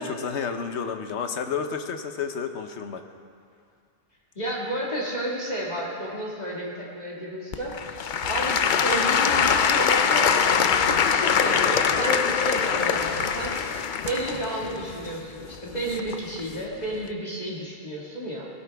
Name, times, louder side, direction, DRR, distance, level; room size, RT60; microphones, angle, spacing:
voice 1, 0.0-3.1, left 6 dB, 85° left, 7 dB, 1.2 m, -31 dB
voice 2, 4.4-13.5 14.0-18.5, right 1 dB, 40° left, -4 dB, 2.1 m, -32 dB
Applause / Crowd, 7.5-16.4 17.0-17.1, left 7 dB, 55° left, 0.6 m, -23 dB
sound 1, 8.2-14.9, right 5 dB, 85° right, 1.2 m, -44 dB
17.5 x 15.5 x 3.4 m, 2.3 s
omnidirectional pair, 1.1 m